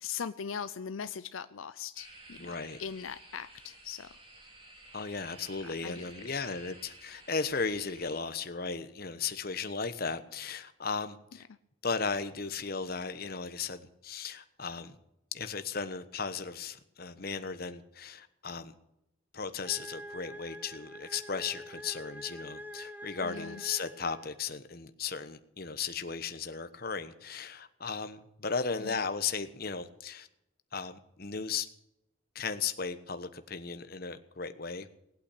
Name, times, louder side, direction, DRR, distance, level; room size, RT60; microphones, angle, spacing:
voice 1, 0.0-4.1 5.6-6.0 23.2-23.6 28.8-29.0, left 7 dB, 80° left, 12 dB, 0.5 m, -40 dB
sound 1, 2.0-8.2, right 2 dB, 25° right, 3.5 m, -53 dB
voice 2, 2.4-2.8 4.9-11.4 11.8-15.0 15.3-18.8 19.3-30.3 30.7-31.7 32.3-34.9, left 5 dB, 45° left, 10 dB, 1.1 m, -36 dB
sound 2, 19.6-24.5, equal, 10° right, 0.8 m, -46 dB
19.0 x 8.7 x 8.5 m, 0.82 s
head